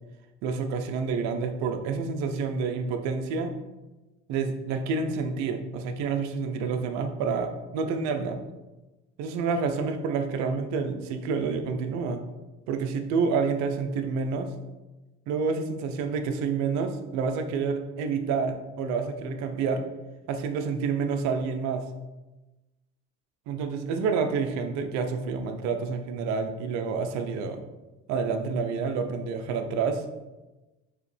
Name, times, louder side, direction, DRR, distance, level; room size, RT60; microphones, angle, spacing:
voice 1, 0.4-3.5 4.3-8.4 9.2-12.3 12.7-14.5 15.3-19.8 20.3-21.9 23.5-27.6 28.1-30.0, right 5 dB, 70° right, 7 dB, 0.6 m, -28 dB
4.9 x 3.0 x 3.2 m, 1.1 s
supercardioid pair, 100°, 29 cm